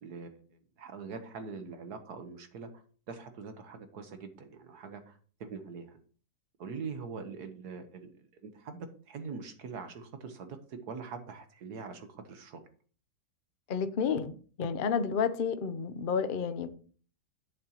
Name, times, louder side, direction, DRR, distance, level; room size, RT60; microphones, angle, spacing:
voice 1, 0.0-6.0 6.6-12.6, right 5 dB, 70° right, 1.6 m, -43 dB
voice 2, 13.7-16.7, left 6 dB, 55° left, 0.6 m, -31 dB
11.0 x 8.6 x 3.0 m
omnidirectional pair, 1.8 m